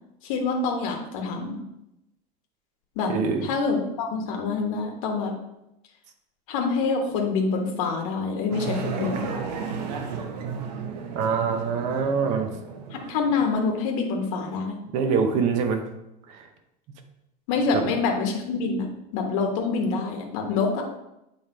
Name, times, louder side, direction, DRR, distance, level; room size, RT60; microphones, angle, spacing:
voice 1, 0.2-1.6 3.0-3.1 3.4-5.3 6.5-9.3 12.9-14.8 17.5-18.9 19.1-20.8, left 4 dB, 55° left, 2 dB, 1.1 m, -26 dB
voice 2, 3.1-3.5 11.1-12.5 14.9-15.9 16.3-16.5 17.7-17.8, right 5 dB, 35° right, 6 dB, 0.7 m, -24 dB
sound 1, 8.5-13.5, right 6 dB, 80° right, 0.9 m, -33 dB
8.0 x 3.4 x 4.4 m, 0.87 s
supercardioid pair, 175°, 20 cm